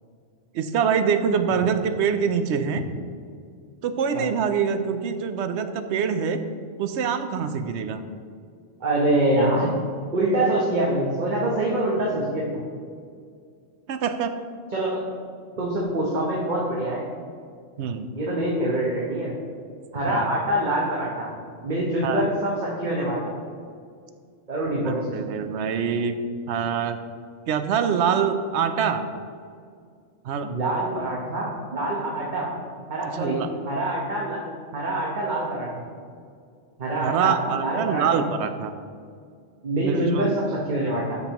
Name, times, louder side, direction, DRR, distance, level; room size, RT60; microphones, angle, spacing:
voice 1, 0.5-2.8 3.8-6.4 6.8-8.0 13.9-14.3 17.8-18.1 20.1-20.3 22.0-22.2 24.8-26.2 26.5-27.0 27.5-29.0 30.2-30.5 33.1-33.5 37.0-38.7 39.8-40.3, right 7 dB, 70° right, 9 dB, 0.8 m, -25 dB
voice 2, 8.8-9.7 10.1-12.6 14.7-15.0 15.6-17.0 18.2-19.3 19.9-21.3 21.6-23.2 24.5-25.3 30.4-32.5 32.9-33.4 33.6-34.4 34.7-35.8 36.8-38.3 39.6-41.2, right 1 dB, 40° right, -4 dB, 1.1 m, -25 dB
12.5 x 5.4 x 3.0 m, 2.2 s
omnidirectional pair, 1.3 m